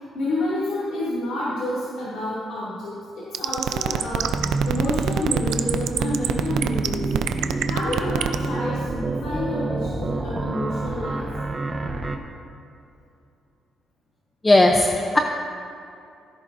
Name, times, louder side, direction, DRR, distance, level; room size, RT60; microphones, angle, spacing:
voice 1, 0.1-7.3 7.6-11.3, left 1 dB, 85° left, -9 dB, 2.5 m, -29 dB
sound 1, 3.3-8.5, right 10 dB, 85° right, 0.5 m, -24 dB
sound 2, 4.2-12.2, right 3 dB, 25° right, 0.9 m, -28 dB
voice 2, 14.4-15.2, left 2 dB, 20° left, 3 dB, 0.6 m, -16 dB
16.5 x 11.0 x 2.6 m, 2.5 s
cardioid pair, 90°, 0 cm